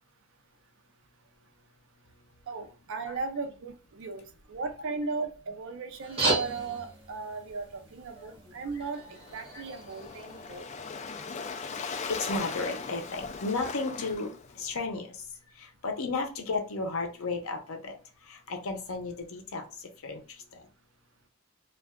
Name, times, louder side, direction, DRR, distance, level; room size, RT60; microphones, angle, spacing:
voice 1, 2.5-10.7, right 4 dB, 60° right, 7 dB, 0.5 m, -37 dB
sound 1, 6.0-10.9, right 3 dB, 25° right, 0.9 m, -35 dB
Waves surf, 9.0-14.7, left 5 dB, 30° left, 0.3 m, -39 dB
voice 2, 11.7-15.3 15.6-18.0 18.2-20.7, left 3 dB, 75° left, 4 dB, 0.7 m, -34 dB
2.4 x 2.2 x 3.5 m, 0.36 s
head